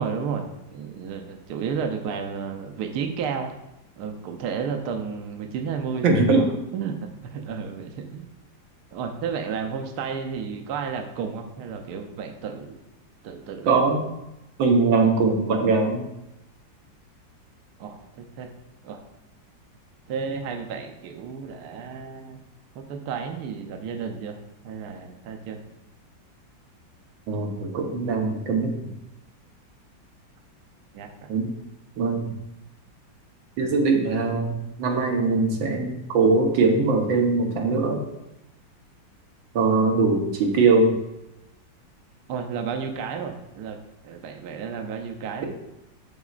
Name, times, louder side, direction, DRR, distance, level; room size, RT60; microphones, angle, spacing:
voice 1, 0.0-3.5 4.0-6.1 6.3-6.5 6.7-6.9 7.2-8.2 8.9-12.8 13.2-13.8 17.8-18.5 18.8-19.0 20.1-22.4 22.7-24.4 24.6-25.6 30.9-31.3 42.3-43.8 44.0-45.4, right 6 dB, 70° right, 4 dB, 1.1 m, -32 dB
voice 2, 6.0-6.4 13.7-14.0 14.6-16.1 27.3-28.9 31.3-31.5 32.0-32.3 33.6-38.0 39.5-40.9, right 3 dB, 90° right, 1 dB, 1.7 m, -21 dB
10.5 x 4.0 x 2.4 m, 0.91 s
omnidirectional pair, 2.1 m